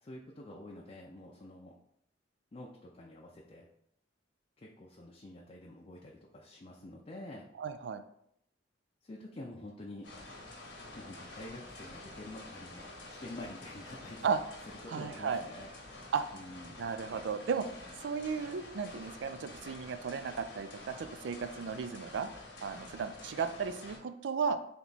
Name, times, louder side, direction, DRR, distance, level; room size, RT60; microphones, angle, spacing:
voice 1, 0.0-1.7 2.5-3.7 4.6-7.5 9.0-10.1 10.9-14.3 14.7-15.7 16.3-16.8, left 1 dB, 30° left, -2 dB, 0.5 m, -48 dB
voice 2, 7.6-8.0 14.2-14.4 14.9-15.4 16.1-16.2 16.8-17.7 18.0-22.3 22.6-24.6, right 6 dB, 70° right, 10 dB, 0.4 m, -34 dB
sound 1, 10.0-24.0, left 2 dB, 70° left, 1.0 m, -49 dB
3.4 x 2.9 x 4.0 m, 0.72 s
head